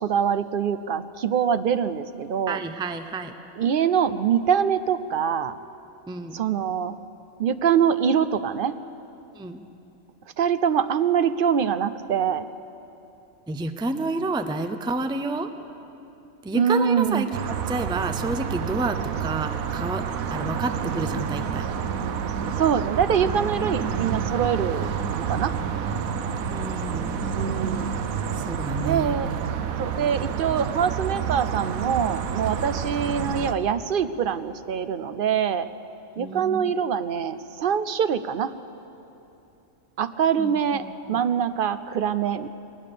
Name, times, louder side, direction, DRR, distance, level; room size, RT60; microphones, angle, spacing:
voice 1, 0.0-2.6 3.6-5.6 6.3-7.0 7.4-8.8 10.4-12.5 16.5-17.2 22.6-24.9 25.2-25.5 26.9-27.0 27.3-27.9 28.8-29.3 29.8-35.7 36.2-38.5 40.0-42.5, right 7 dB, 55° right, 13 dB, 0.6 m, -24 dB
voice 2, 2.5-3.3 6.1-6.4 9.3-9.6 13.5-15.5 16.4-20.0 20.3-21.7 26.5-27.2 28.4-29.2 36.2-36.7 40.4-41.2, right 2 dB, 5° right, 9 dB, 0.4 m, -30 dB
sound 1, 17.3-33.5, right 7 dB, 90° right, 1.3 m, -29 dB
20.0 x 19.5 x 6.8 m, 2.9 s
omnidirectional pair, 1.4 m